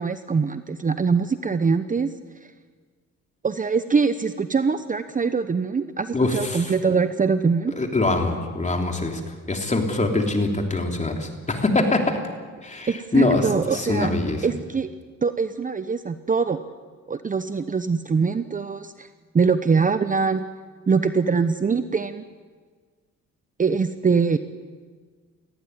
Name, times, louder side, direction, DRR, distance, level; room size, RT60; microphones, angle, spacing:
voice 1, 0.0-2.1 3.4-7.7 12.9-14.1 14.4-14.9 15.2-16.6 17.1-19.1 19.3-20.4 20.9-22.2 23.6-24.4, right 5 dB, 25° right, 11 dB, 0.8 m, -23 dB
voice 2, 6.1-6.7 7.8-9.2 9.5-12.2 12.6-14.4, left 2 dB, 25° left, 3 dB, 3.4 m, -23 dB
19.0 x 14.5 x 9.6 m, 1.5 s
cardioid pair, 90°, 30 cm